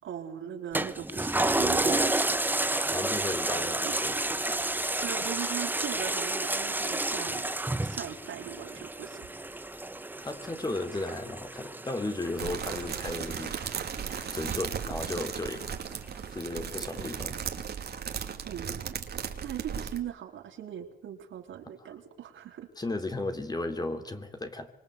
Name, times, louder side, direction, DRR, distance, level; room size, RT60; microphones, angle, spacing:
voice 1, 0.0-2.1 3.8-4.0 5.0-7.5 7.8-9.2 18.4-19.0 19.4-22.7, right 10 dB, 75° right, 3 dB, 3.9 m, -39 dB
Toilet flush, 0.7-15.6 16.0-16.1, right 2 dB, 10° right, 1.2 m, -31 dB
voice 2, 2.9-4.2 10.2-13.6 14.3-15.7 16.3-17.4 21.8-21.9 22.8-24.7, left 2 dB, 20° left, 7 dB, 3.3 m, -35 dB
sound 1, 12.4-20.0, right 7 dB, 55° right, 2.9 m, -36 dB
25.5 x 24.0 x 8.5 m, 0.76 s
cardioid pair, 90°, 20 cm